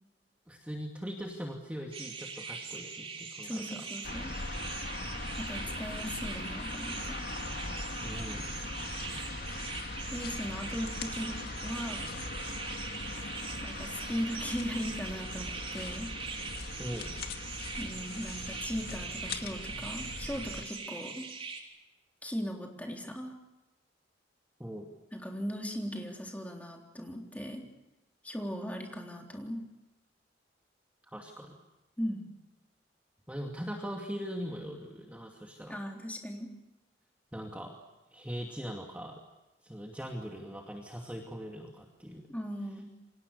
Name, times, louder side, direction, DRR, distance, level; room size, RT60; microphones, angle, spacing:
voice 1, 0.5-3.9 8.0-8.5 16.8-17.1 24.6-24.9 31.1-31.6 33.3-35.8 37.3-37.7 38.1-39.2 39.6-42.2, equal, 10° right, 0 dB, 2.4 m, -41 dB
sound 1, 1.9-21.6, right 5 dB, 30° right, 3.7 m, -42 dB
voice 2, 3.4-4.3 5.4-7.2 10.1-12.0 13.6-16.1 17.8-21.3 22.2-23.3 25.1-27.6 28.2-29.6 32.0-32.3 35.7-36.5 42.3-42.9, equal, 10° left, 1 dB, 3.7 m, -38 dB
sound 2, 4.0-20.6, left 2 dB, 60° left, 2.1 m, -40 dB
29.0 x 25.5 x 6.8 m, 1.0 s
head